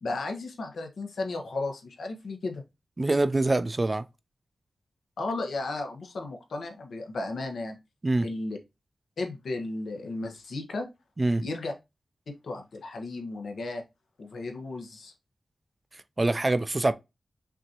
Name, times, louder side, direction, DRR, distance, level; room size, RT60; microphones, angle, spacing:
voice 1, 0.0-2.6 5.2-7.8 8.2-8.6 9.2-10.9 11.4-11.7 12.3-13.8 14.2-15.1, left 2 dB, 85° left, 1.1 m, -34 dB
voice 2, 3.0-4.0 8.0-8.3 11.2-11.4 16.2-16.9, right 2 dB, 25° right, 0.3 m, -24 dB
5.9 x 2.7 x 2.9 m
wide cardioid pair, 125°, 0 cm